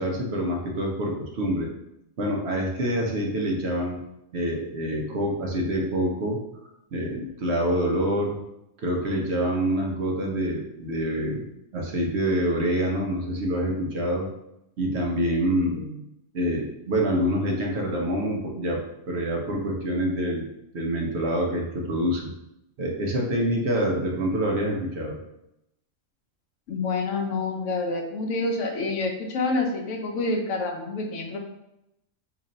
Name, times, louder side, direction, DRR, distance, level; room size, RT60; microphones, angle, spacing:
voice 1, 0.0-1.7 2.2-4.0 4.3-6.4 6.9-8.4 8.8-11.5 11.7-14.3 14.8-15.8 16.3-20.5 20.7-22.3 22.8-25.2, equal, 60° right, 0 dB, 0.9 m, -26 dB
voice 2, 26.7-31.4, left 3 dB, 75° left, 3 dB, 1.0 m, -28 dB
2.9 x 2.5 x 4.0 m, 0.84 s
omnidirectional pair, 1.3 m